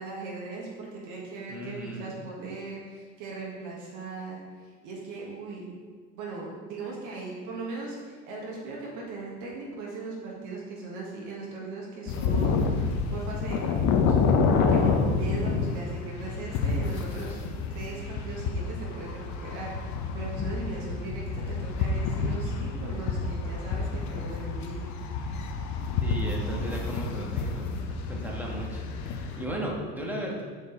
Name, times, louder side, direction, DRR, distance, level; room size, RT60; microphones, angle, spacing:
voice 1, 0.0-4.4 4.8-5.7 6.1-12.7 13.1-14.2 14.6-17.4 17.7-24.8, right 3 dB, 65° right, -3 dB, 1.7 m, -38 dB
voice 2, 1.5-2.2 26.0-30.4, right 1 dB, 5° right, -2 dB, 1.7 m, -36 dB
sound 1, 12.1-29.5, left 4 dB, 60° left, 0.9 m, -28 dB
6.6 x 4.9 x 4.0 m, 1.5 s
hypercardioid pair, 75°, 32 cm